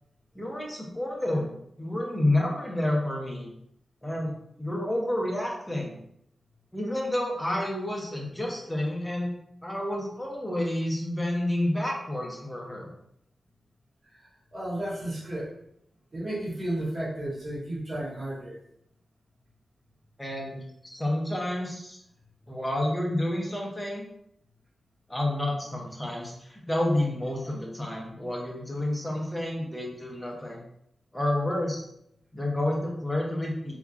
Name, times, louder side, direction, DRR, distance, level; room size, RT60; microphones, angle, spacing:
voice 1, 0.3-1.5 1.8-3.5 4.0-6.0 6.7-9.3 9.6-12.9 20.2-22.0 22.5-24.1 25.1-30.6 31.1-31.8 32.3-33.8, left 1 dB, 10° left, -1 dB, 0.7 m, -29 dB
voice 2, 14.0-15.5 16.1-18.5, right 1 dB, 40° right, -8 dB, 1.2 m, -33 dB
2.8 x 2.3 x 2.3 m, 0.74 s
wide cardioid pair, 95°, 0 cm